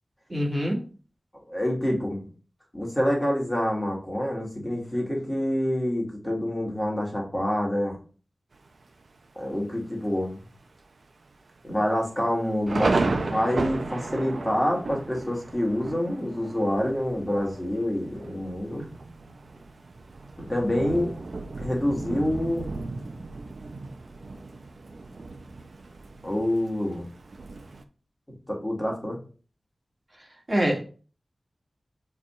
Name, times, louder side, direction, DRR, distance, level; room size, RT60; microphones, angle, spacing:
voice 1, 0.3-0.8 30.5-30.8, equal, 35° right, -1 dB, 2.0 m, -24 dB
voice 2, 1.3-2.3 2.7-8.0 9.4-10.4 11.6-18.8 20.4-21.1 21.6-22.7 26.2-27.0 28.5-29.2, left 1 dB, 15° left, -2 dB, 2.0 m, -27 dB
Thunder, 8.5-9.1 9.6-9.7 10.0-10.4 10.8-10.9 11.6-27.8, right 3 dB, 70° right, 0.7 m, -34 dB
6.4 x 3.5 x 4.3 m, 0.38 s
wide cardioid pair, 75°, 0 cm